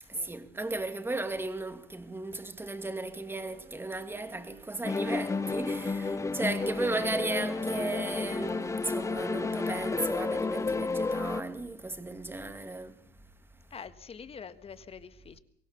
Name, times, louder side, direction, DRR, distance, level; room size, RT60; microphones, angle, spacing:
voice 1, 0.1-13.0, right 2 dB, 15° right, 2.5 m, -35 dB
Wind instrument woodwind instrument, 3.1-11.4, right 8 dB, 70° right, 2.9 m, -55 dB
sound 1, 4.8-11.4, left 4 dB, 15° left, 0.8 m, -31 dB
voice 2, 13.7-15.4, left 6 dB, 35° left, 1.6 m, -46 dB
24.0 x 17.0 x 7.0 m
cardioid pair, 110°, 17 cm